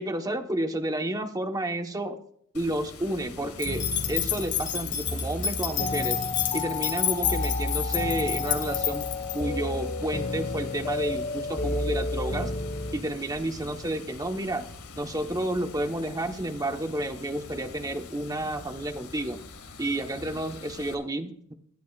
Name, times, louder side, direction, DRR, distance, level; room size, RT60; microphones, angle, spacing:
voice 1, 0.0-2.2 2.5-6.2 6.5-9.1 9.3-12.5 12.9-14.7 14.9-19.4 19.8-21.5, right 1 dB, 15° right, 6 dB, 1.0 m, -31 dB
Water, 2.5-20.9, left 3 dB, 85° left, 1.9 m, -45 dB
sound 1, 3.6-9.4, left 11 dB, 55° left, 2.1 m, -30 dB
sound 2, 3.6-13.0, left 2 dB, 30° left, 0.9 m, -31 dB
19.5 x 13.0 x 2.4 m, 0.66 s
head